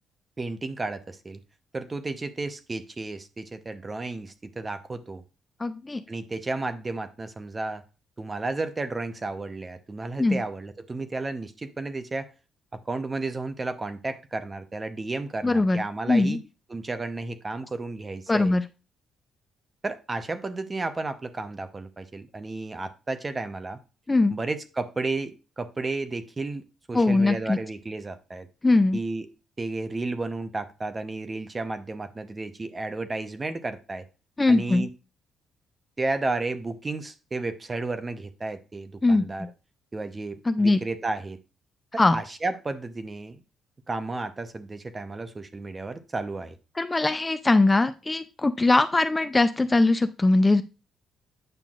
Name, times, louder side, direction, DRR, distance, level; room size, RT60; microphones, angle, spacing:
voice 1, 0.4-1.4 1.7-5.2 6.1-7.8 8.2-12.3 12.7-16.4 16.7-18.6 19.8-23.8 24.3-28.5 28.9-29.3 29.6-34.0 34.5-34.9 36.0-39.5 39.9-41.4 42.1-43.4 43.9-46.6, right 3 dB, 25° right, 10 dB, 0.8 m, -32 dB
voice 2, 5.6-6.0 10.2-10.4 15.4-16.4 18.3-18.6 24.1-24.4 26.9-27.6 28.6-29.0 34.4-34.9 39.0-39.5 40.5-40.8 42.0-42.2 46.8-50.6, left 2 dB, 20° left, 10 dB, 0.4 m, -21 dB
9.0 x 5.8 x 2.5 m, 0.31 s
cardioid pair, 90°, 0 cm